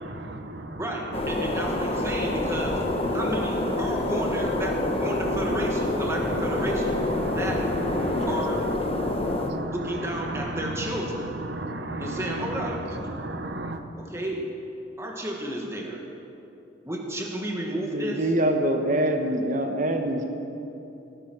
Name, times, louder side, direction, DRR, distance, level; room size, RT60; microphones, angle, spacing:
voice 1, 0.0-0.8 7.2-7.4 8.0-8.3 8.9-9.7 10.6-10.7 11.5-12.7 13.1-13.8, right 1 dB, 55° right, 7 dB, 0.9 m, -34 dB
voice 2, 0.8-2.8 3.1-7.0 7.4-7.7 8.3-8.6 9.7-11.3 12.0-13.1 14.0-14.5 15.0-16.0 16.8-18.3, right 1 dB, 15° right, 0 dB, 1.6 m, -32 dB
sound 1, 1.1-9.5, left 2 dB, 30° left, 1.0 m, -27 dB
voice 3, 17.9-20.2, right 1 dB, 40° right, 4 dB, 1.2 m, -24 dB
17.5 x 10.0 x 6.1 m, 2.9 s
head